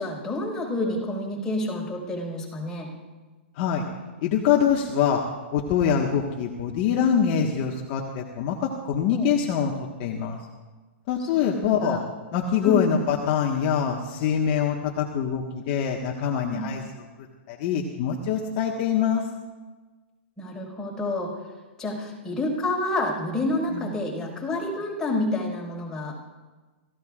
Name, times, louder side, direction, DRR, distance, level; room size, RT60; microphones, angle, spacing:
voice 1, 0.0-2.9 9.1-9.3 11.4-12.0 12.6-12.9 16.5-16.7 20.4-21.3 21.8-26.1, left 2 dB, 10° left, -3 dB, 5.4 m, -29 dB
voice 2, 4.2-5.2 5.5-10.4 11.1-12.0 12.3-17.0 17.5-19.2 23.7-23.9, left 8 dB, 45° left, -1 dB, 1.6 m, -24 dB
27.5 x 15.5 x 2.5 m, 1.3 s
hypercardioid pair, 135°, 6 cm